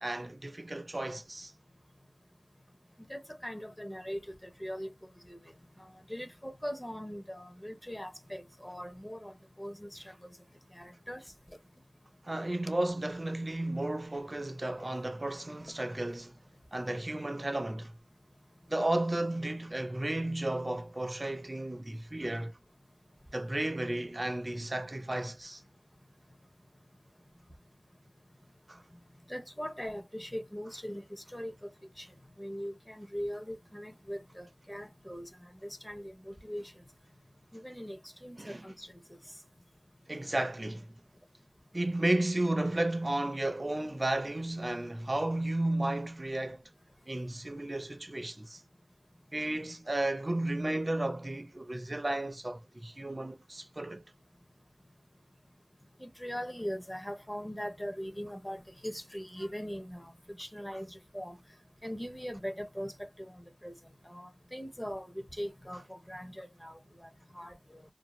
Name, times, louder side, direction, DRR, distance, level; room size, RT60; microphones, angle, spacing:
voice 1, 0.0-1.5 12.2-16.4 16.7-17.9 18.7-22.6 23.3-25.6 28.7-28.8 38.4-38.7 40.1-40.9 41.7-46.6 47.1-48.6 49.3-54.0, right 1 dB, 35° right, 0.4 m, -33 dB
voice 2, 3.1-4.9 5.3-5.4 5.8-10.1 10.7-11.2 29.3-31.7 32.0-32.1 32.4-35.3 35.6-36.6 37.5-38.9 56.0-60.1 60.4-61.4 61.8-63.1 63.6-63.7 64.1-67.1 67.4-67.8, equal, 10° left, 0.6 m, -41 dB
2.5 x 2.1 x 3.0 m
wide cardioid pair, 65°, 0 cm